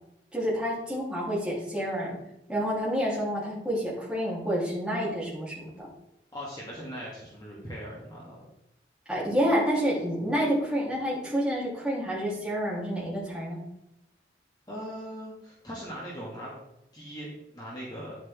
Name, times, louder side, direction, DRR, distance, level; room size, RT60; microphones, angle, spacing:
voice 1, 0.3-2.2 2.5-5.9 9.1-13.6, equal, 5° right, -7 dB, 3.8 m, -28 dB
voice 2, 6.3-8.4 14.7-16.6 16.9-18.2, equal, 20° left, -6 dB, 2.5 m, -40 dB
10.0 x 7.8 x 3.7 m, 0.87 s
head